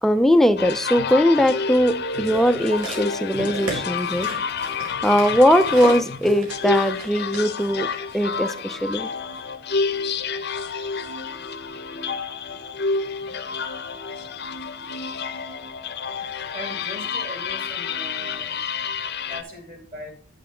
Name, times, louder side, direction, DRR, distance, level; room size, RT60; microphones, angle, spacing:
voice 1, 0.0-4.5 5.0-9.1, equal, ahead, 9 dB, 0.5 m, -20 dB
sound 1, 0.6-19.4, left 5 dB, 50° left, 0.8 m, -29 dB
sound 2, 2.2-8.6 9.3-9.4, right 2 dB, 75° right, 4.5 m, -35 dB
voice 2, 16.5-18.6 19.3-20.1, equal, 40° right, 4 dB, 2.5 m, -38 dB
9.3 x 8.8 x 3.8 m, 0.39 s
head